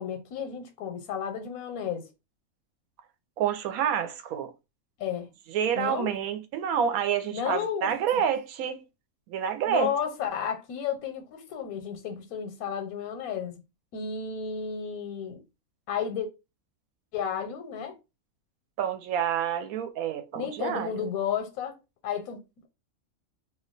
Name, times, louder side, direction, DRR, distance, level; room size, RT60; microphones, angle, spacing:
voice 1, 0.0-2.1 5.0-5.3 5.7-6.1 7.3-8.2 9.7-13.5 13.9-15.4 15.9-16.3 17.1-18.0 20.3-21.8 22.0-22.7, left 7 dB, 80° left, 1.1 m, -32 dB
voice 2, 3.4-4.5 5.5-8.8 9.3-9.9 18.8-20.9, right 8 dB, 85° right, 1.0 m, -28 dB
2.5 x 2.2 x 3.7 m
omnidirectional pair, 1.5 m